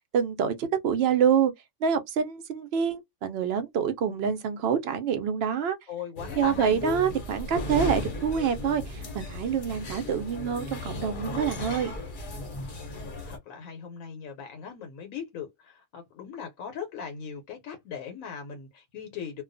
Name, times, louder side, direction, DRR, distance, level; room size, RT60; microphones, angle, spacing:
voice 1, 0.1-1.5 1.8-5.8 6.3-11.9, right 7 dB, 60° right, 0.7 m, -26 dB
voice 2, 5.9-7.1 12.8-19.4, left 7 dB, 90° left, 1.0 m, -39 dB
sound 1, 6.2-13.4, left 1 dB, 50° left, 0.7 m, -36 dB
2.3 x 2.2 x 2.5 m
omnidirectional pair, 1.4 m